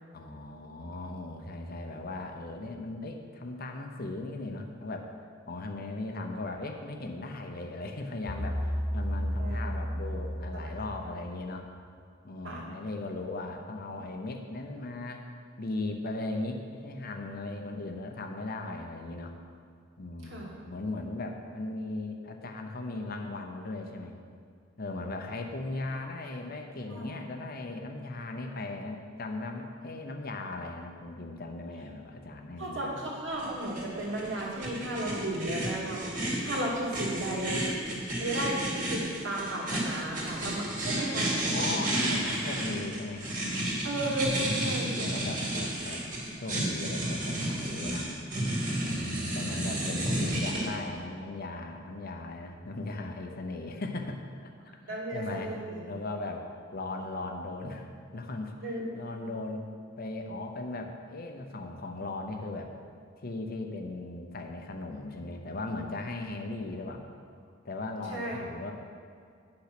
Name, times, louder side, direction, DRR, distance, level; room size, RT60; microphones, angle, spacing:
voice 1, 0.1-5.1 5.5-11.7 12.2-15.2 15.6-19.3 20.0-24.1 24.8-33.0 40.4-40.8 41.4-43.3 44.3-46.1 46.4-48.1 48.8-54.5 54.9-55.6 55.8-56.5 56.7-59.6 60.0-62.7 63.2-67.0 67.6-68.7, left 2 dB, 50° left, 3 dB, 0.8 m, -38 dB
sound 1, 8.3-11.4, equal, 5° left, 0.6 m, -32 dB
voice 2, 32.6-36.2 36.4-37.7 38.2-38.6 38.9-41.8 43.8-45.1 45.5-45.6 48.8-49.0 54.9-55.8 58.6-58.8 59.2-59.3 68.1-68.4, right 1 dB, 70° right, -4 dB, 2.2 m, -34 dB
sound 2, 33.4-50.6, right 1 dB, 40° right, 2.3 m, -32 dB
9.2 x 5.9 x 6.0 m, 2.3 s
head